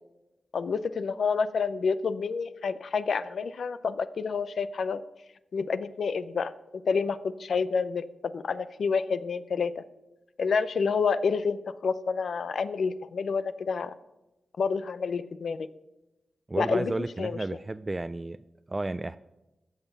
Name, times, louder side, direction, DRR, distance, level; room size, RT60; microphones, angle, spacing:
voice 1, 0.5-5.0 5.5-6.5 6.8-9.8 10.4-13.9 14.6-15.7 16.6-16.9 17.2-17.4, left 5 dB, 75° left, 14 dB, 0.5 m, -28 dB
voice 2, 16.5-18.4 18.7-19.2, right 2 dB, 25° right, 12 dB, 0.3 m, -32 dB
15.0 x 5.6 x 5.7 m, 0.98 s
cardioid pair, 65°, 0 cm